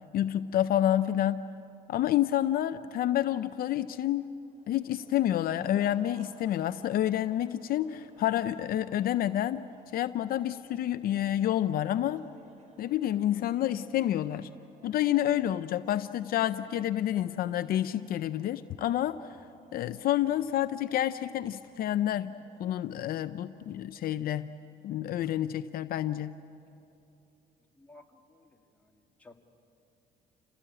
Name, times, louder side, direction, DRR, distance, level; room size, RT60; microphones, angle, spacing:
voice 1, 0.1-1.4 1.9-4.3 4.7-9.7 9.9-12.2 12.8-14.5 14.8-19.4 19.7-24.5 24.8-26.3, left 12 dB, 60° left, 12 dB, 0.5 m, -29 dB
sound 1, 4.5-23.8, right 3 dB, 45° right, 3.2 m, -61 dB
voice 2, 27.8-29.3, left 2 dB, 10° left, 1 dB, 2.0 m, -56 dB
28.5 x 17.5 x 8.9 m, 2.8 s
cardioid pair, 110°, 17 cm